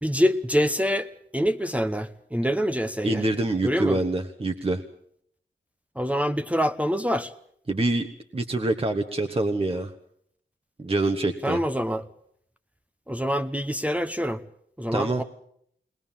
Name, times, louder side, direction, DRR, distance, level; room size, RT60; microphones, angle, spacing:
voice 1, 0.0-3.2 3.6-4.0 6.0-7.3 11.4-12.0 13.1-14.4 14.8-15.2, equal, 5° right, 1.0 m, -25 dB
voice 2, 3.0-4.8 7.7-8.1 8.3-9.9 10.8-11.6 14.9-15.2, right 2 dB, 30° right, 1.3 m, -25 dB
20.5 x 20.0 x 7.4 m
cardioid pair, 55°, 19 cm